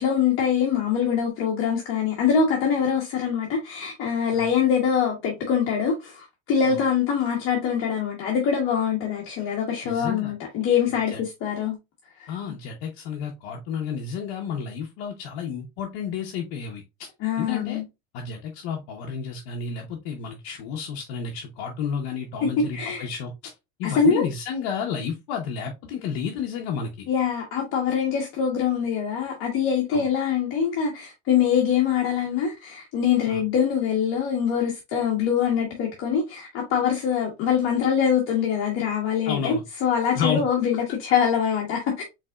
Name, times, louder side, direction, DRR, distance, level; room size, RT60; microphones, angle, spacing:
voice 1, 0.0-11.8 12.2-12.3 17.2-17.8 22.4-23.1 23.8-24.2 27.1-42.0, left 7 dB, 40° left, 1.3 m, -24 dB
voice 2, 9.8-10.3 11.1-11.2 12.3-17.1 17.4-17.8 18.1-23.5 23.8-27.1 29.9-30.0 33.3-33.4 39.3-39.6 40.2-40.4, left 6 dB, 65° left, 1.0 m, -31 dB
5.3 x 3.5 x 2.4 m
cardioid pair, 150°, 31 cm